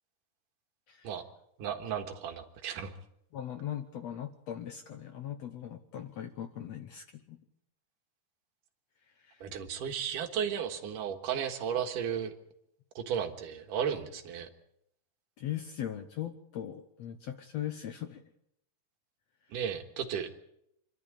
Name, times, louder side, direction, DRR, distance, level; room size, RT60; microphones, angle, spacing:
voice 1, 1.6-2.9 9.4-12.3 13.0-14.5 19.5-20.3, right 8 dB, 75° right, 6 dB, 3.0 m, -34 dB
voice 2, 3.3-7.4 9.1-9.5 15.4-18.2, left 11 dB, 65° left, 7 dB, 1.8 m, -39 dB
26.5 x 12.0 x 8.6 m, 0.78 s
omnidirectional pair, 3.8 m